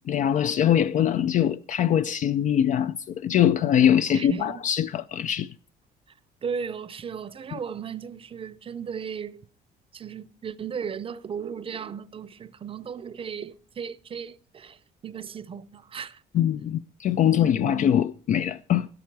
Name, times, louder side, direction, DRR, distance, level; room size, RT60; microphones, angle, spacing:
voice 1, 0.1-5.5 16.3-18.9, left 10 dB, 50° left, 0.4 m, -23 dB
voice 2, 4.1-4.6 6.4-9.4 9.9-16.5 17.2-18.0, right 7 dB, 35° right, 0.6 m, -36 dB
13.5 x 9.6 x 4.6 m
cardioid pair, 110°, 17 cm